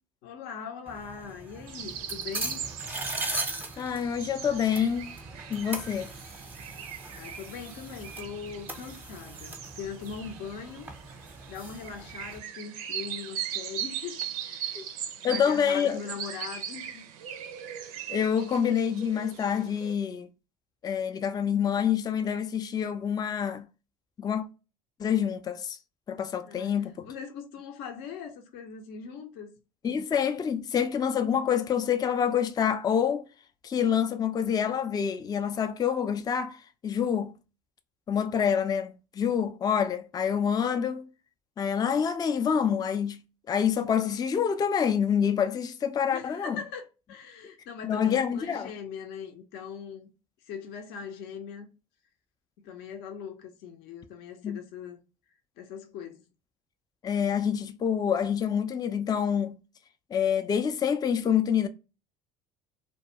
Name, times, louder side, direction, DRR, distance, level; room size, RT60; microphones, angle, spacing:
voice 1, 0.2-2.6 7.1-14.8 15.2-17.0 26.5-29.5 46.1-50.1 50.5-51.7 52.6-55.0 55.6-56.2, left 6 dB, 65° left, 0.6 m, -41 dB
sound 1, 0.9-12.4, right 2 dB, 10° right, 0.7 m, -40 dB
sound 2, 1.7-19.9, right 9 dB, 80° right, 0.4 m, -40 dB
voice 2, 3.8-5.1 5.5-6.1 14.8-14.9 15.2-16.0 18.1-20.3 20.8-23.7 24.2-24.5 25.0-25.8 26.1-27.1 29.8-33.2 33.6-37.3 38.1-41.1 41.6-43.2 43.5-46.6 47.8-48.7 54.4-54.6 57.0-59.6 60.1-61.7, left 8 dB, 20° left, 0.3 m, -27 dB
2.3 x 2.2 x 2.8 m
hypercardioid pair, 70°, 18 cm